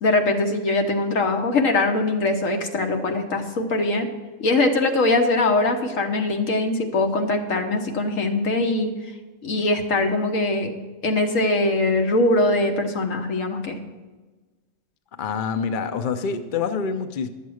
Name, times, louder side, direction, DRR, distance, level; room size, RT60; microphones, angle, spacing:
voice 1, 0.0-4.1 4.4-8.9 9.4-10.7 11.0-13.8, left 2 dB, 85° left, 4 dB, 1.6 m, -22 dB
voice 2, 15.2-17.3, left 5 dB, 50° left, 8 dB, 0.8 m, -26 dB
11.5 x 7.3 x 6.4 m, 1.2 s
omnidirectional pair, 1.3 m